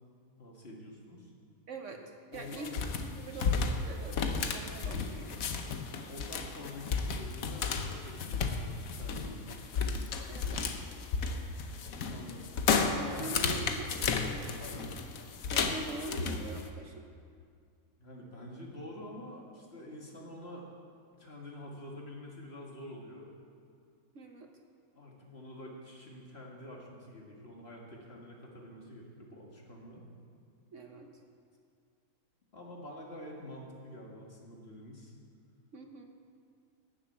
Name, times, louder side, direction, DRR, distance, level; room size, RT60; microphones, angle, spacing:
voice 1, 0.4-1.3 2.3-2.8 5.9-9.7 12.0-12.5 12.8-13.5 14.5-14.9 18.0-20.7 21.1-23.3 24.9-30.0 32.5-35.1, left 1 dB, 40° left, -1 dB, 2.0 m, -47 dB
voice 2, 1.7-2.0 2.3-5.3 10.3-10.6 13.0-13.9 15.5-17.0 24.1-24.5 30.7-31.1 35.7-36.1, right 3 dB, 55° right, 3 dB, 1.2 m, -43 dB
sound 1, 2.3-16.6, left 5 dB, 65° left, 1.3 m, -33 dB
12.5 x 7.4 x 8.5 m, 2.2 s
omnidirectional pair, 1.6 m